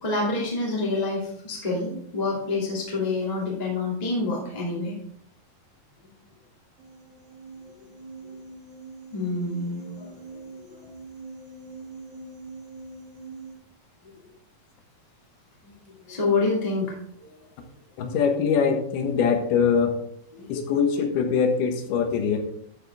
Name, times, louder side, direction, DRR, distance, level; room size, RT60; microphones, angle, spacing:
voice 1, 0.0-4.9 7.8-7.9 9.1-10.1 10.6-10.8 15.9-16.9 17.2-17.5 20.4-20.6, left 3 dB, 15° left, -4 dB, 2.0 m, -27 dB
sound 1, 6.8-13.6, right 3 dB, 75° right, 3.4 m, -43 dB
voice 2, 18.0-20.0 20.5-22.4, left 6 dB, 80° left, 5 dB, 3.2 m, -23 dB
13.0 x 7.3 x 3.5 m, 0.69 s
omnidirectional pair, 4.4 m